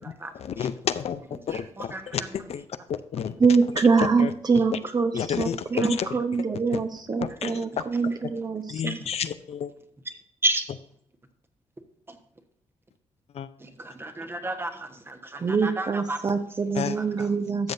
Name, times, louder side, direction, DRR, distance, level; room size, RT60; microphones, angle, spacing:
voice 1, 0.3-2.6 2.9-3.3 4.2-4.3 5.1-6.1 6.7-6.8 7.2-7.5 8.7-9.7 13.3-13.5 16.8-17.0 17.6-17.7, left 8 dB, 60° left, 12 dB, 0.6 m, -31 dB
voice 2, 1.5-2.3 5.7-5.9 8.8-9.3 10.4-10.6 12.1-12.2 13.6-16.2 17.2-17.3, right 2 dB, 20° right, 6 dB, 1.2 m, -31 dB
voice 3, 3.4-9.0 15.4-17.7, right 4 dB, 35° right, 8 dB, 1.0 m, -24 dB
13.0 x 7.2 x 2.7 m, 0.69 s
cardioid pair, 110°, 12 cm